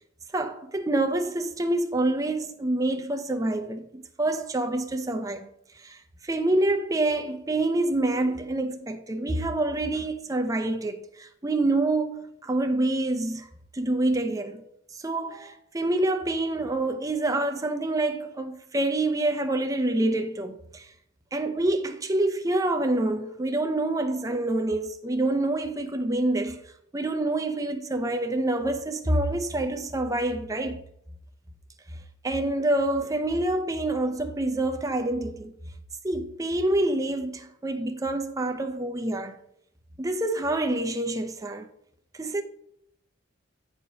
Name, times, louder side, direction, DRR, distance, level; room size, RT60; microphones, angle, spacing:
voice 1, 0.3-5.5 5.8-13.5 13.7-20.9 21.3-26.6 26.9-30.8 32.2-35.5 36.0-39.4 40.0-41.7 42.1-42.4, right 2 dB, 15° right, 0.6 m, -27 dB
9.3 x 4.8 x 4.0 m
head